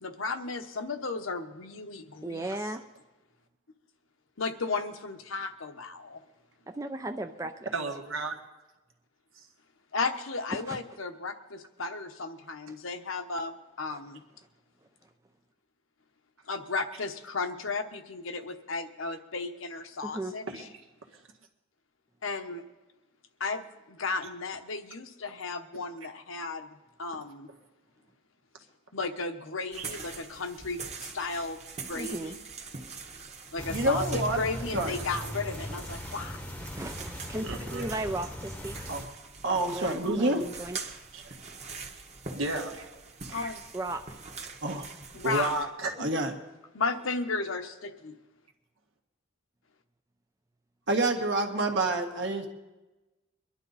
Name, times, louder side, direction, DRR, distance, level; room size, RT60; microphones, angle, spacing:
voice 1, 0.0-2.5 4.4-6.2 9.9-14.2 16.5-20.7 22.2-22.6 23.4-27.5 28.9-31.6 31.9-32.4 33.5-36.4 43.3-43.6 45.1-45.5 46.7-48.1, left 4 dB, 75° left, 6 dB, 1.1 m, -34 dB
voice 2, 2.2-2.8 6.7-7.7 10.5-10.8 13.9-14.0 20.0-20.4 31.9-32.3 36.7-38.8 39.7-40.8 43.7-44.0, right 2 dB, 15° right, 6 dB, 0.4 m, -36 dB
voice 3, 7.7-8.4 20.5-20.6 27.5-27.6 37.4-37.9 41.1-41.3 42.3-42.9 43.3-43.5 45.2-45.9, right 2 dB, 75° right, 3 dB, 1.8 m, -32 dB
sound 1, 29.7-45.6, right 4 dB, 35° right, 1.4 m, -43 dB
sound 2, 33.6-39.1, equal, 5° left, 1.0 m, -39 dB
voice 4, 33.7-34.4 34.7-34.9 38.9-39.0 39.4-40.4 44.6-44.9 46.0-46.3 50.9-52.5, right 2 dB, 60° right, 3 dB, 1.6 m, -27 dB
23.0 x 11.5 x 4.1 m, 1.1 s
head